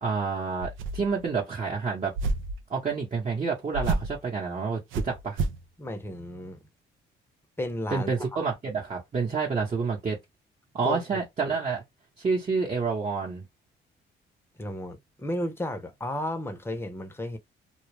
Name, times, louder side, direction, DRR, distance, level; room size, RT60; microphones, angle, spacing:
voice 1, 0.0-2.1 2.7-5.4 7.9-10.2 10.7-11.8 12.2-13.4, right 5 dB, 35° right, 0.9 m, -29 dB
sound 1, 0.6-1.2 2.1-2.6 3.7-4.2 4.9-5.6, right 3 dB, 80° right, 0.5 m, -29 dB
voice 2, 5.8-6.6 7.6-8.1 10.8-11.2 14.6-17.4, left 1 dB, 10° left, 0.7 m, -33 dB
2.3 x 2.0 x 3.2 m
cardioid pair, 90°, 20 cm